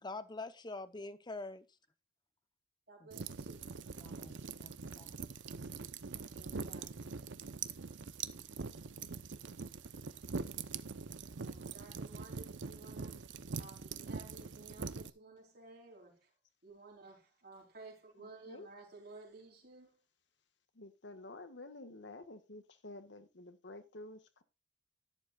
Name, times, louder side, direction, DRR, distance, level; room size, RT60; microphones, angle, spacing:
voice 1, 0.0-1.7 3.0-3.1 4.0-5.1, left 3 dB, 25° left, 0.8 m, -45 dB
voice 2, 2.9-3.7 6.1-7.0 11.3-13.3 13.6-16.3 16.6-20.0, right 3 dB, 55° right, 4.1 m, -55 dB
sound 1, 3.1-15.1, right 5 dB, 75° right, 0.7 m, -43 dB
voice 3, 18.2-18.7 20.7-24.4, left 2 dB, 70° left, 1.5 m, -50 dB
11.5 x 11.0 x 2.4 m
head